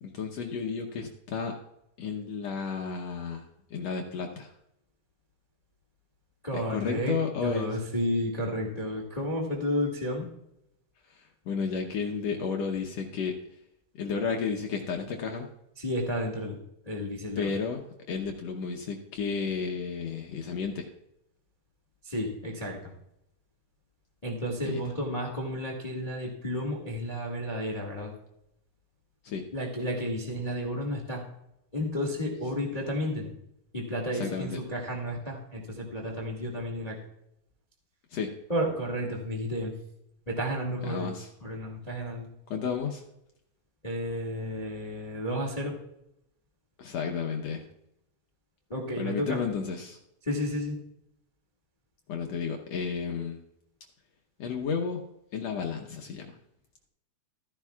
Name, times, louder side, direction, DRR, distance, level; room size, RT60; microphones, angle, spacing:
voice 1, 0.0-1.6 2.0-3.4 3.7-4.5 6.5-7.7 11.1-13.3 14.0-15.5 17.4-20.9 24.6-24.8 29.2-29.4 34.1-34.6 38.1-38.3 40.8-41.3 42.5-43.0 46.8-47.6 49.0-50.0 52.1-53.4 54.4-55.0 55.3-56.3, left 5 dB, 75° left, 2 dB, 1.5 m, -32 dB
voice 2, 6.4-10.3 15.8-16.6 16.8-17.5 22.0-22.9 24.2-28.1 29.5-31.2 31.7-33.3 33.7-37.0 38.5-39.7 40.3-41.1 41.4-42.3 43.8-45.8 48.7-49.4 50.2-50.8, equal, 55° left, 0 dB, 0.4 m, -32 dB
14.5 x 14.0 x 2.4 m, 0.81 s
omnidirectional pair, 4.1 m